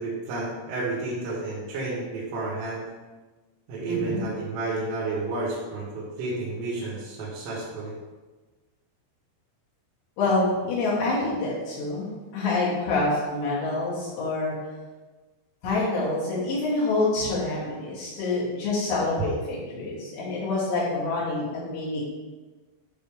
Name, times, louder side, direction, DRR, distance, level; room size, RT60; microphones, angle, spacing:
voice 1, 0.0-2.9 3.7-7.9, right 3 dB, 80° right, -9 dB, 4.5 m, -31 dB
voice 2, 3.9-4.2 10.2-14.6 15.6-22.1, left 2 dB, 60° left, -7 dB, 4.9 m, -27 dB
12.0 x 6.3 x 3.6 m, 1.2 s
omnidirectional pair, 5.7 m